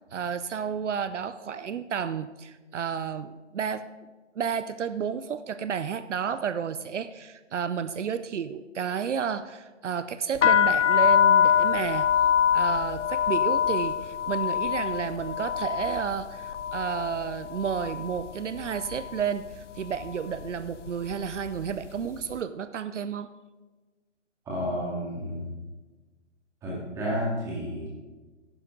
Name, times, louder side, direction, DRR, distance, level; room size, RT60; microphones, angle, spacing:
voice 1, 0.1-3.9 4.4-12.1 12.5-23.3, right 7 dB, 75° right, 12 dB, 0.6 m, -31 dB
sound 1, 10.4-18.3 18.6-19.2 19.8-20.1 20.4-21.9, left 8 dB, 80° left, 0.5 m, -24 dB
voice 2, 24.5-25.4 26.6-28.0, equal, 10° right, -5 dB, 2.0 m, -31 dB
11.0 x 10.0 x 3.8 m, 1.2 s
hypercardioid pair, 160°, 36 cm